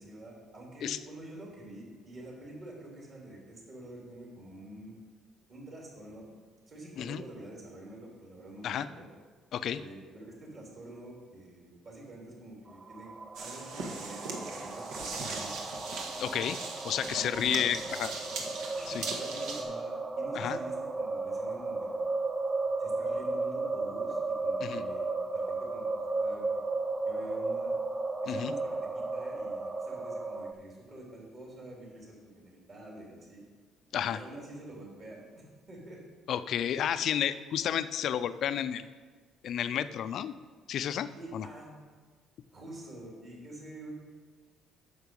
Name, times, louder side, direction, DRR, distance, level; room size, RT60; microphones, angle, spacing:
voice 1, 0.0-4.9 5.5-6.3 6.7-9.1 9.7-13.1 13.4-15.7 17.1-17.7 18.7-22.1 22.8-26.7 27.0-27.8 28.2-33.5 34.1-36.0 41.1-41.7 42.5-43.9, right 1 dB, 40° right, -2 dB, 3.0 m, -47 dB
sound 1, 12.7-30.5, right 3 dB, 15° right, 0.4 m, -34 dB
sound 2, 13.3-19.6, right 3 dB, 75° right, 1.5 m, -39 dB
voice 2, 16.2-16.6 16.8-18.1 18.9-19.1 20.3-20.6 24.6-24.8 28.3-28.5 33.9-34.2 36.3-38.8 39.4-40.3 40.7-41.5, left 9 dB, 55° left, 13 dB, 0.4 m, -31 dB
9.4 x 6.6 x 5.3 m, 1.5 s
cardioid pair, 140°, 0 cm